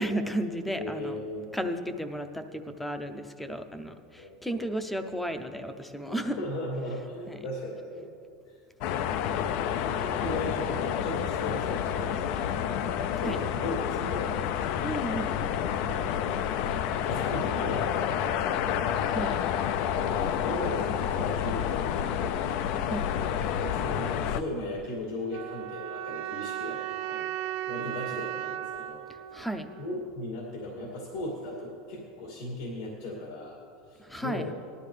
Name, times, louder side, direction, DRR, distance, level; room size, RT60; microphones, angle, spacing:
voice 1, 0.0-1.2 1.5-6.4 7.3-7.4 13.2-13.4 14.8-15.5 19.0-19.4 22.9-23.1 27.2-27.3 29.3-29.7 34.0-34.5, right 1 dB, 5° left, 8 dB, 0.6 m, -33 dB
voice 2, 0.7-1.5 4.2-4.7 6.1-8.1 8.4-8.6 9.1-12.5 12.8-14.4 15.7-16.5 17.0-18.8 19.8-22.5 23.3-27.3 27.7-29.0 29.3-29.5 29.8-33.6 33.9-34.5, left 1 dB, 75° left, -2 dB, 2.5 m, -37 dB
sound 1, 8.8-24.4, left 9 dB, 50° left, 0.4 m, -29 dB
sound 2, 25.3-30.3, right 12 dB, 50° right, 0.7 m, -36 dB
19.0 x 12.0 x 3.3 m, 2.4 s
supercardioid pair, 160°, 3 cm